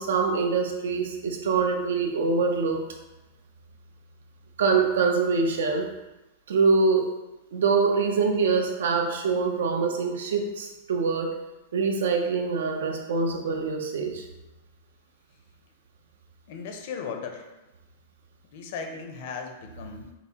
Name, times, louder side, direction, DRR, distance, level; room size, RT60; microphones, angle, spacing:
voice 1, 0.0-2.8 4.6-5.9 6.5-7.1 7.5-11.3 11.7-14.2, right 4 dB, 85° right, 4 dB, 0.6 m, -24 dB
voice 2, 16.5-17.5 18.5-20.1, left 5 dB, 50° left, 4 dB, 0.5 m, -36 dB
5.5 x 2.0 x 2.8 m, 1.0 s
supercardioid pair, 165°, 0 cm